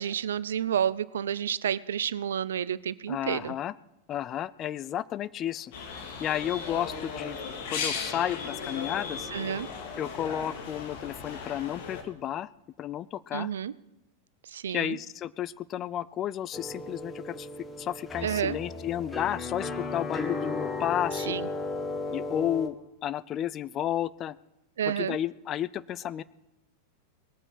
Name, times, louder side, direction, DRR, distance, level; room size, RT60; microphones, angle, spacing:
voice 1, 0.0-3.5 9.3-9.7 13.3-13.7 14.5-15.0 18.2-18.6 21.3-21.5 24.8-25.2, right 9 dB, 65° right, 19 dB, 0.5 m, -30 dB
voice 2, 3.1-3.7 4.1-5.7 6.2-7.4 7.7-9.3 10.0-12.5 12.8-13.5 14.7-17.5 17.8-21.4 22.1-22.8 23.0-24.4 24.9-26.2, left 11 dB, 30° left, 18 dB, 0.4 m, -32 dB
sound 1, 5.7-12.0, left 5 dB, 50° left, 2.3 m, -36 dB
sound 2, 16.5-22.7, left 2 dB, 10° left, 1.6 m, -35 dB
19.5 x 8.8 x 6.2 m, 0.91 s
figure-of-eight pair, 90°, 0 cm